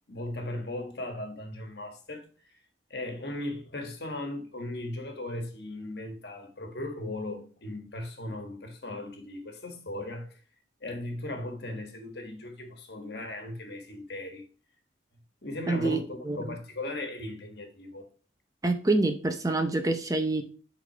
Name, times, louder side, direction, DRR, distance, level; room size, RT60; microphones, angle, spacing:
voice 1, 0.1-2.6 2.9-10.4 10.8-14.5 15.4-18.1, left 1 dB, 65° left, 1.5 m, -37 dB
voice 2, 15.7-16.6 18.6-20.4, right 2 dB, 20° right, 0.7 m, -27 dB
7.8 x 4.1 x 4.4 m
head